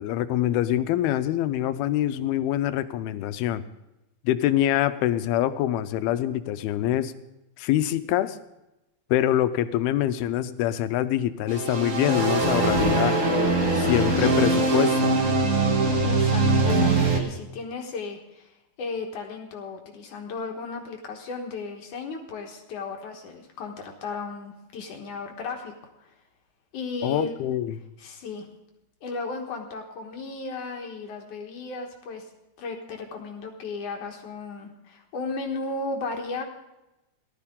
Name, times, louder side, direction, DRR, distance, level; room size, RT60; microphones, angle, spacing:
voice 1, 0.0-3.6 4.2-7.1 7.6-8.4 9.1-13.2 13.8-15.2 27.0-27.8, left 12 dB, 90° left, 12 dB, 2.6 m, -25 dB
sound 1, 11.5-17.2, right 2 dB, 50° right, 0.9 m, -22 dB
voice 2, 16.0-25.7 26.0-26.1 26.7-27.3 28.0-28.5 29.0-32.2 32.6-36.4, left 3 dB, 60° left, 2 dB, 2.6 m, -35 dB
18.5 x 13.0 x 3.7 m, 0.95 s
omnidirectional pair, 4.4 m